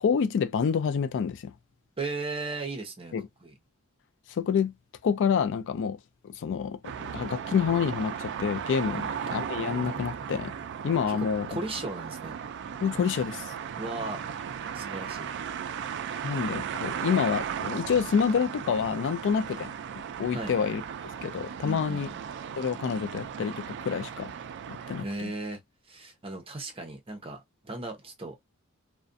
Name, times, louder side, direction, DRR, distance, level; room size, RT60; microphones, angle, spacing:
voice 1, 0.0-1.5 3.1-3.3 4.3-4.7 5.0-6.0 6.2-10.5 10.8-11.5 12.8-13.5 16.2-19.7 20.2-20.8 21.2-22.1 22.6-24.3 24.9-25.3, left 6 dB, 60° left, 0.3 m, -28 dB
voice 2, 2.0-3.2 3.4-3.5 8.9-9.1 11.1-12.4 13.8-14.3 14.7-15.3 20.3-20.6 21.6-22.2 25.0-25.6 25.9-28.4, right 2 dB, 25° right, 0.7 m, -36 dB
sound 1, 6.8-25.0, right 8 dB, 55° right, 0.3 m, -36 dB
2.4 x 2.2 x 2.5 m
head